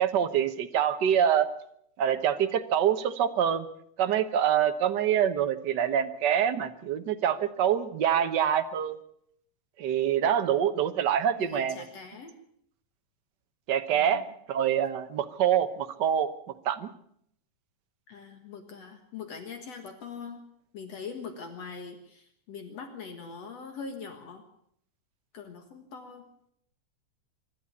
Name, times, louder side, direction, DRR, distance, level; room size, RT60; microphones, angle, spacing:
voice 1, 0.0-1.5 2.0-3.7 4.0-9.0 9.8-11.8 13.7-16.3 16.6-16.9, right 9 dB, 60° right, 9 dB, 1.1 m, -25 dB
voice 2, 11.4-12.3 13.9-14.3 18.1-20.4 20.7-24.4 25.3-26.2, left 5 dB, 60° left, 6 dB, 2.7 m, -42 dB
25.0 x 12.0 x 8.5 m, 0.69 s
omnidirectional pair, 3.4 m